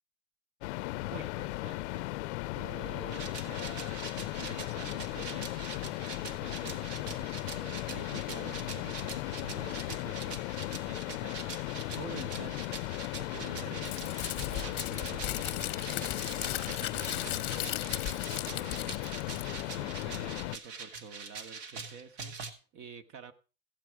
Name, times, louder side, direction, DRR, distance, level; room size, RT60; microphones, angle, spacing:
sound 1, 0.6-20.6, left 19 dB, 75° left, 0.5 m, -37 dB
voice 1, 1.1-2.1 2.5-12.8 13.2-23.3, right 5 dB, 40° right, 10 dB, 1.1 m, -49 dB
sound 2, 3.1-22.5, right 5 dB, 70° right, 1.7 m, -44 dB
Crumpling crinkling, 13.8-19.8, left 13 dB, 30° left, 0.9 m, -37 dB
14.5 x 8.3 x 4.6 m, 0.34 s
supercardioid pair, 160°, 34 cm